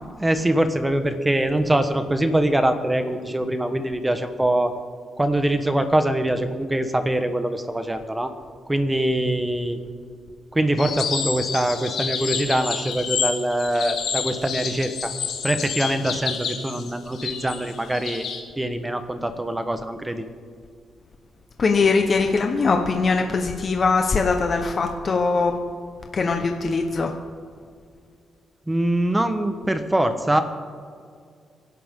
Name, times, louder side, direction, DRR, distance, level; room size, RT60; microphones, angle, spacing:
voice 1, 0.2-4.7 5.2-8.3 8.7-9.8 10.5-15.1 15.4-18.2 18.6-20.2 28.7-30.4, right 1 dB, 15° right, 8 dB, 1.2 m, -23 dB
sound 1, 10.8-18.4, left 6 dB, 80° left, 2.3 m, -29 dB
voice 2, 21.6-25.6 26.1-27.1, left 4 dB, 45° left, 4 dB, 1.2 m, -21 dB
28.0 x 12.0 x 3.8 m, 2.2 s
cardioid pair, 100°, 0 cm